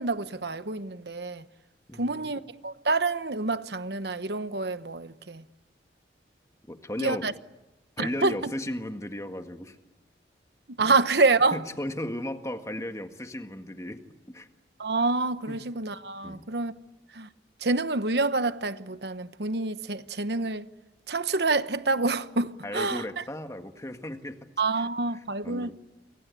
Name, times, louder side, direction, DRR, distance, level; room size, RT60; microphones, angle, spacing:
voice 1, 0.0-1.4 2.0-5.4 7.0-7.3 8.0-8.5 10.8-11.6 14.8-16.7 17.1-17.3 17.6-20.6 21.1-23.2 24.6-25.7, right 3 dB, 65° right, 1.1 m, -27 dB
voice 2, 1.9-2.3 6.7-7.3 8.0-9.8 10.8-11.0 11.5-14.0 14.3-14.5 15.5-15.6 16.2-16.5 22.6-24.4 24.7-24.9 25.1-25.7, left 1 dB, 15° left, 1.7 m, -35 dB
29.0 x 24.5 x 8.4 m
head